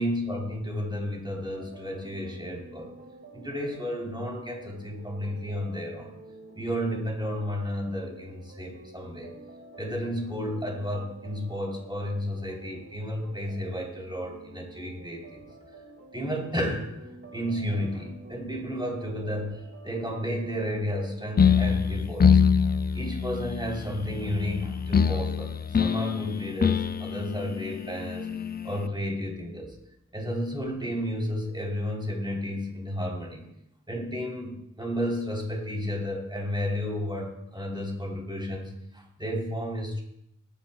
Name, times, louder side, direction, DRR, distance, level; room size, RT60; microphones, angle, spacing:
voice 1, 0.0-2.9 3.3-6.1 6.6-9.3 9.8-15.4 16.1-16.9 17.3-22.4 22.9-25.5 25.8-28.3 28.6-29.7 30.1-33.4 33.9-40.0, equal, 15° right, -1 dB, 3.5 m, -32 dB
sound 1, 1.5-21.5, right 2 dB, 45° right, 2.0 m, -49 dB
sound 2, 21.4-28.9, left 6 dB, 35° left, 0.4 m, -25 dB
18.5 x 12.0 x 2.3 m, 0.76 s
wide cardioid pair, 65°, 30 cm